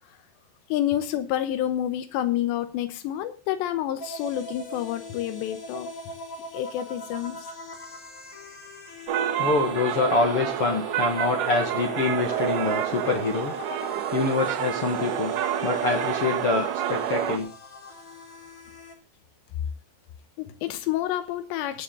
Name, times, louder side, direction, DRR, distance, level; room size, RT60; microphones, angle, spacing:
voice 1, 0.7-5.9 6.5-7.5 20.4-21.8, left 12 dB, 90° left, 3.2 m, -28 dB
sound 1, 4.0-18.9, left 2 dB, 40° left, 2.8 m, -41 dB
sound 2, 9.1-17.4, right 10 dB, 75° right, 2.0 m, -28 dB
voice 2, 9.4-13.5 14.1-15.3 15.6-17.5, left 4 dB, 55° left, 1.5 m, -25 dB
21.0 x 7.2 x 3.7 m
omnidirectional pair, 5.0 m